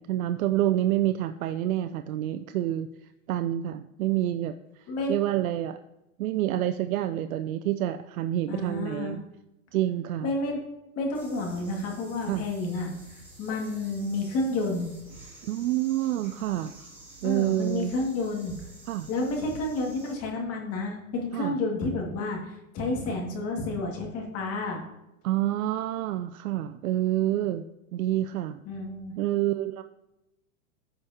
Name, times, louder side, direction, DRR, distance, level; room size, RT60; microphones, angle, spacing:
voice 1, 0.0-2.9 3.3-5.8 6.2-9.2 9.7-10.3 12.3-12.4 15.4-16.7 17.2-17.9 18.9-19.1 21.3-21.6 25.2-27.6 27.9-28.6 29.2-29.8, right 13 dB, 80° right, 9 dB, 0.5 m, -28 dB
voice 2, 8.5-9.2 10.2-10.6 11.0-14.9 17.2-18.5 19.1-24.8 28.7-29.1, left 2 dB, 35° left, 0 dB, 2.0 m, -30 dB
sound 1, 11.1-20.1, right 2 dB, 5° right, 2.3 m, -50 dB
14.5 x 5.0 x 2.8 m, 0.94 s
hypercardioid pair, 130°, 42 cm